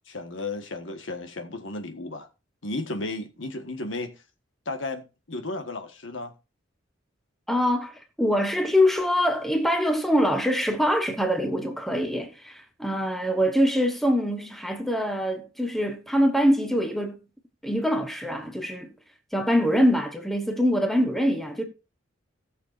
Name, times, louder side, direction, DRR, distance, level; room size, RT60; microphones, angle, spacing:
voice 1, 0.1-2.3 2.6-4.1 4.6-6.3, left 2 dB, 75° left, 1.5 m, -34 dB
voice 2, 7.5-17.2 17.6-18.9 19.3-21.6, equal, ahead, 1.2 m, -24 dB
18.0 x 6.6 x 2.6 m
head